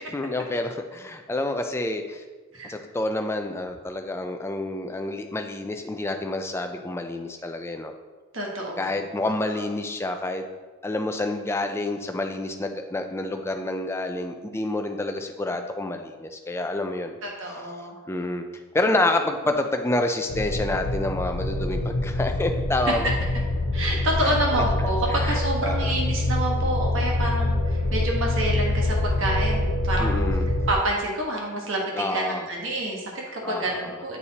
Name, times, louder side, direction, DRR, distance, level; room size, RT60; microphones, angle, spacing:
voice 1, 0.1-2.2 2.7-7.9 8.8-10.4 10.8-17.2 18.1-18.4 18.7-23.1 24.2-24.4 25.1-25.9 30.0-30.5 31.9-32.5 33.4-34.0, left 2 dB, 10° left, 5 dB, 0.3 m, -28 dB
voice 2, 8.3-9.0 9.6-9.7 17.2-18.0 19.1-19.2 22.8-22.9 23.7-30.2 30.7-34.2, right 1 dB, 60° right, -1 dB, 1.3 m, -28 dB
sound 1, 20.3-30.7, left 2 dB, 75° left, 0.4 m, -25 dB
8.1 x 4.2 x 2.8 m, 1.3 s
head